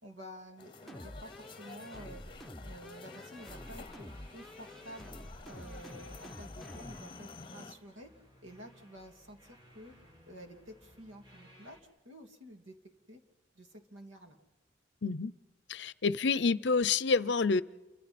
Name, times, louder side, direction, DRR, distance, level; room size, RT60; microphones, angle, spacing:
voice 1, 0.0-2.2 2.6-5.1 5.4-8.1 8.4-9.9 10.3-11.8 12.0-12.8 13.1-13.2 13.5-14.4, equal, 85° right, 2.6 m, -50 dB
sound 1, 0.6-7.8, left 3 dB, 25° left, 0.9 m, -51 dB
sound 2, 0.9-7.1, left 1 dB, ahead, 0.9 m, -48 dB
sound 3, 3.4-11.8, equal, 20° right, 3.1 m, -59 dB
voice 2, 15.0-15.3 15.7-17.6, left 4 dB, 60° left, 0.6 m, -28 dB
29.0 x 25.0 x 4.3 m
head